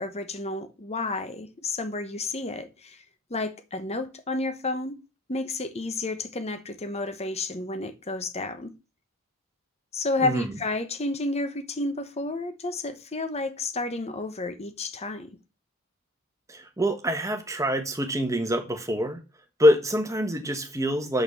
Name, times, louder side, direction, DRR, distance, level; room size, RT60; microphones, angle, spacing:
voice 1, 0.0-3.0 3.3-5.0 5.3-8.7 9.9-15.3, left 2 dB, 30° left, 1.1 m, -31 dB
voice 2, 16.5-19.2 19.6-21.2, equal, 15° right, 1.3 m, -25 dB
6.5 x 5.9 x 7.0 m
head